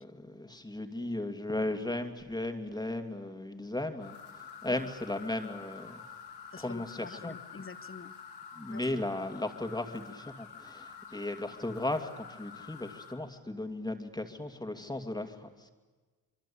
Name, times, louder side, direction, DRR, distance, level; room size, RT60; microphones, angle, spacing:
voice 1, 0.0-4.2 4.6-6.0 6.6-7.4 8.6-15.7, left 2 dB, 10° left, 6 dB, 2.5 m, -36 dB
sound 1, 4.0-13.1, left 6 dB, 80° left, 4.4 m, -48 dB
voice 2, 6.5-8.1 8.7-8.8, left 4 dB, 30° left, 11 dB, 1.5 m, -46 dB
25.5 x 24.0 x 8.7 m, 1.3 s
cardioid pair, 100°, 40 cm